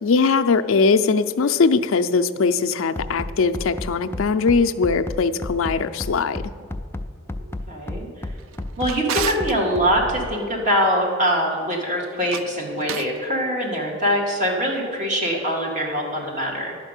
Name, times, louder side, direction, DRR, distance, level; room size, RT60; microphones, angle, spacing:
voice 1, 0.0-6.4, left 4 dB, 75° left, 10 dB, 0.4 m, -20 dB
Bass drum, 2.9-10.3, left 1 dB, 10° left, 0.3 m, -31 dB
voice 2, 7.4-8.1 8.8-16.8, equal, 35° right, -1 dB, 1.9 m, -23 dB
Drawer open or close, 8.4-9.6 12.1-13.2, right 8 dB, 70° right, 0.4 m, -32 dB
10.5 x 5.2 x 8.1 m, 2.2 s
head